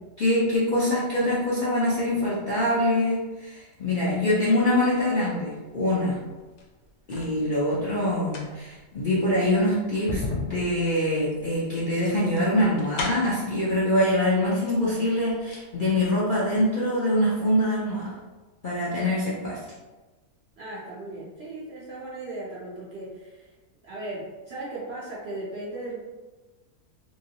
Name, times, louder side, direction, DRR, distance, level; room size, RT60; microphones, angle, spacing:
voice 1, 0.2-6.2 7.1-18.1 18.6-19.6, left 1 dB, 50° left, -9 dB, 0.6 m, -24 dB
sound 1, 6.4-7.4 8.1-13.5 14.4-14.5 14.9-15.7 16.0-16.1, left 3 dB, 80° left, 1.2 m, -36 dB
voice 2, 20.6-23.5 23.8-26.0, right 2 dB, 55° right, -7 dB, 0.8 m, -37 dB
3.0 x 2.9 x 2.8 m, 1.2 s
omnidirectional pair, 1.7 m